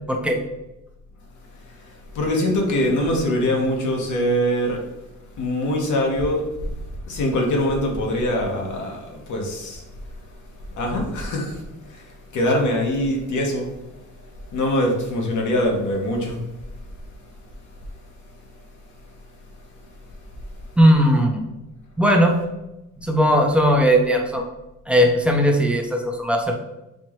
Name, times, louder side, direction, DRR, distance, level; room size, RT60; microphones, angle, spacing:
voice 1, 0.1-0.4 20.8-21.4 22.0-22.4 23.0-24.4 24.9-26.5, equal, 5° right, 2 dB, 0.6 m, -18 dB
voice 2, 2.1-4.8 5.4-6.5 7.1-9.8 10.8-11.6 11.9-12.0 12.3-13.7 14.5-16.4, left 1 dB, 80° left, 0 dB, 1.1 m, -23 dB
4.4 x 2.9 x 3.0 m, 0.96 s
cardioid pair, 90°, 30 cm